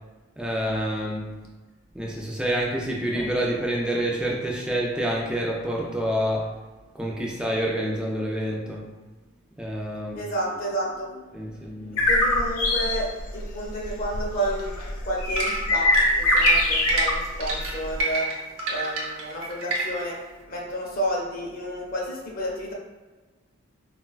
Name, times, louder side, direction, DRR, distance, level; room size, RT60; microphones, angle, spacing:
voice 1, 0.4-1.4 1.9-6.5 6.9-8.9 9.6-10.2 11.3-12.0, right 1 dB, 5° right, -2 dB, 0.3 m, -27 dB
voice 2, 10.0-14.7 15.0-22.7, equal, 40° left, -2 dB, 0.6 m, -31 dB
sound 1, 12.0-18.0, left 1 dB, 85° left, 0.5 m, -23 dB
sound 2, 15.4-20.1, right 2 dB, 70° right, 0.7 m, -28 dB
3.8 x 2.2 x 2.3 m, 1.3 s
head